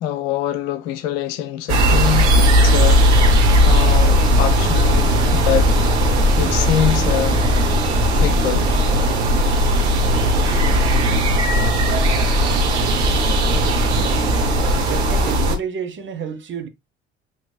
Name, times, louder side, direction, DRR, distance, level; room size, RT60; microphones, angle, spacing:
voice 1, 0.0-3.2 3.7-5.7 6.4-7.4 8.2-8.7, left 11 dB, 60° left, 0.7 m, -24 dB
sound 1, 1.7-15.6, equal, 75° right, 1.0 m, -17 dB
sound 2, 2.8-8.1, left 4 dB, 5° left, 2.9 m, -30 dB
voice 2, 14.9-16.7, right 7 dB, 35° right, 1.1 m, -29 dB
6.1 x 3.1 x 2.4 m
figure-of-eight pair, 55°, 34 cm